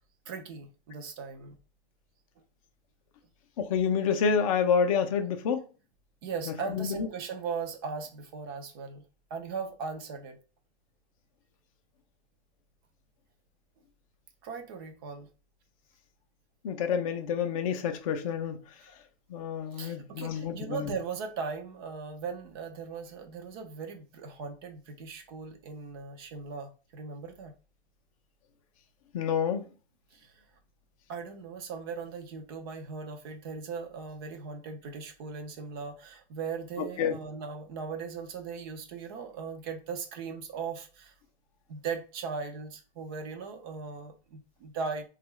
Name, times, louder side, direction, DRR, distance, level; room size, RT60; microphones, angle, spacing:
voice 1, 0.3-1.6 6.2-9.0 9.3-10.4 14.4-15.3 18.8-18.9 19.7-27.5 30.1-30.3 31.1-41.1 41.7-45.1, right 5 dB, 20° right, 0.5 m, -38 dB
voice 2, 3.6-5.6 6.7-7.1 16.6-18.6 19.3-20.9 29.1-29.6 37.0-37.2, left 6 dB, 35° left, 0.5 m, -28 dB
3.5 x 2.4 x 3.0 m
hypercardioid pair, 145°, 33 cm